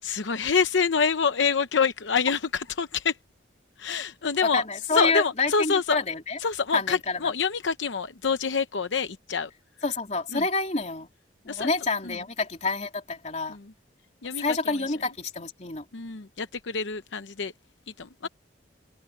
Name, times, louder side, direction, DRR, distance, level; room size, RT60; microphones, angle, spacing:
voice 1, 0.0-3.2 3.8-4.6 4.9-6.0 6.4-9.5 10.3-10.4 11.5-11.7 12.0-12.2 13.5-13.7 14.2-14.8 15.9-17.5 18.0-18.3, left 5 dB, 85° left, 0.8 m, -26 dB
voice 2, 4.5-6.4 6.7-7.2 9.8-11.1 11.4-13.6 14.4-15.9 18.2-18.3, left 3 dB, 40° left, 3.2 m, -28 dB
head